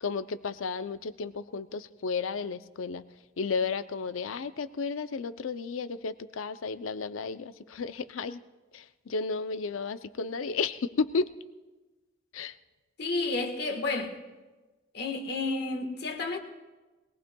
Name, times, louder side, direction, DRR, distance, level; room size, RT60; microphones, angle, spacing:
voice 1, 0.0-3.0 3.4-8.4 8.7-11.3 12.3-12.5, left 4 dB, 85° left, 0.5 m, -33 dB
voice 2, 13.0-14.1 14.9-16.4, left 3 dB, 55° left, 1.4 m, -31 dB
21.0 x 18.5 x 2.3 m
head